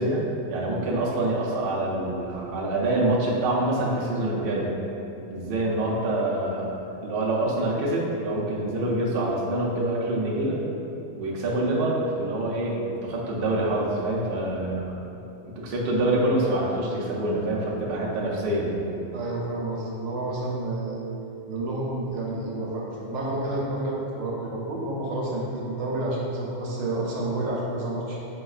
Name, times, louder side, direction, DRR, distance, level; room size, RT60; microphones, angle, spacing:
voice 1, 0.0-4.7 5.3-10.6 11.2-15.0 15.4-18.8, right 1 dB, 60° right, -4 dB, 0.6 m, -26 dB
voice 2, 19.1-21.0 21.5-28.2, right 2 dB, 90° right, -4 dB, 1.0 m, -29 dB
4.7 x 2.2 x 2.3 m, 3.0 s
omnidirectional pair, 1.3 m